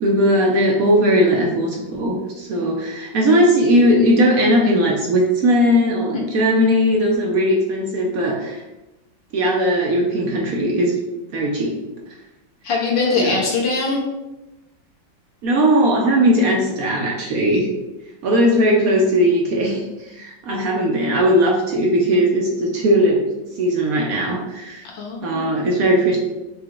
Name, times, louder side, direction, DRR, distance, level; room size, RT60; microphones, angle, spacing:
voice 1, 0.0-8.6 9.3-10.9 11.3-11.8 13.1-13.4 15.4-17.7 18.2-23.2 23.6-24.8 25.2-26.2, equal, 65° right, -1 dB, 0.9 m, -18 dB
voice 2, 12.6-14.0 24.8-25.7, left 4 dB, 85° left, -3 dB, 1.8 m, -22 dB
4.8 x 2.3 x 4.6 m, 1.0 s
omnidirectional pair, 2.0 m